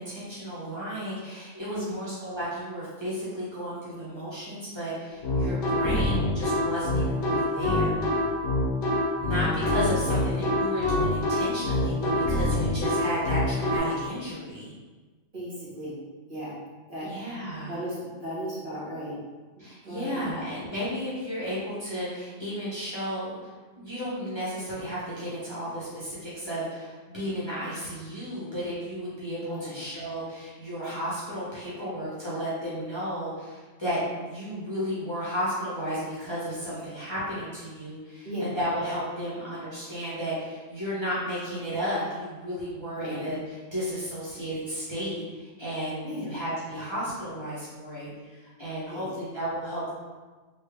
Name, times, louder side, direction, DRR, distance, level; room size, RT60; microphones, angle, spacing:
voice 1, 0.0-8.1 9.2-14.7 17.0-17.8 19.6-23.4 23.8-49.9, equal, 25° left, -11 dB, 0.9 m, -33 dB
sound 1, 5.2-13.8, left 1 dB, 60° left, 1.1 m, -25 dB
voice 2, 15.3-15.9 16.3-16.5 16.9-17.1 17.7-19.2 19.6-20.2 29.5-29.7 38.2-38.5 42.9-43.2 46.0-46.3 48.9-49.0, equal, 40° right, -9 dB, 1.3 m, -36 dB
3.3 x 2.8 x 3.4 m, 1.3 s
omnidirectional pair, 1.3 m